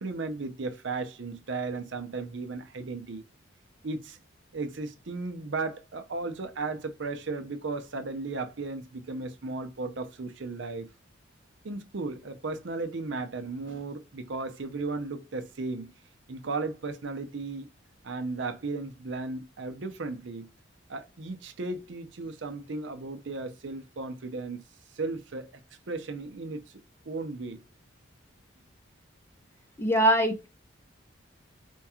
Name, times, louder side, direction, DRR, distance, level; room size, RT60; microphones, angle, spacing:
voice 1, 0.0-3.2 3.8-4.2 4.5-10.9 11.6-15.9 16.3-17.7 18.0-20.5 20.9-24.6 25.0-25.5 25.9-26.6 27.1-27.6, right 3 dB, 60° right, 0.6 m, -35 dB
voice 2, 29.8-30.5, right 1 dB, 10° left, 0.6 m, -22 dB
4.5 x 2.3 x 2.8 m
head